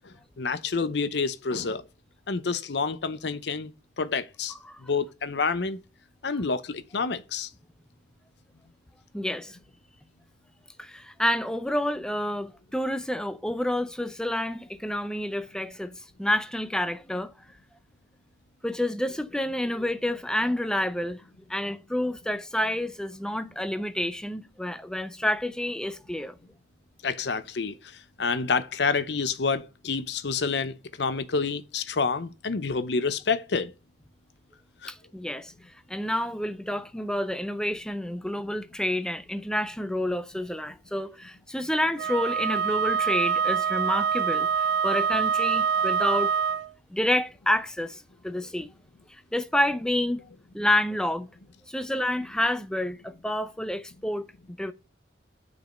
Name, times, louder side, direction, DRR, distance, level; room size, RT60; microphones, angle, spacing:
voice 1, 0.4-1.8 2.3-3.7 4.0-4.5 4.8-5.8 6.2-7.5 27.0-27.7 28.2-33.7 34.8-34.9, left 4 dB, 70° left, 0.7 m, -28 dB
voice 2, 9.1-9.6 10.8-15.9 16.2-17.3 18.6-21.2 21.5-26.3 34.9-35.5 35.9-46.4 46.9-48.7 49.3-50.2 50.5-51.3 51.7-54.7, left 1 dB, 5° left, 0.5 m, -29 dB
Wind instrument woodwind instrument, 42.0-46.7, right 6 dB, 60° right, 0.3 m, -25 dB
6.2 x 5.2 x 6.6 m
head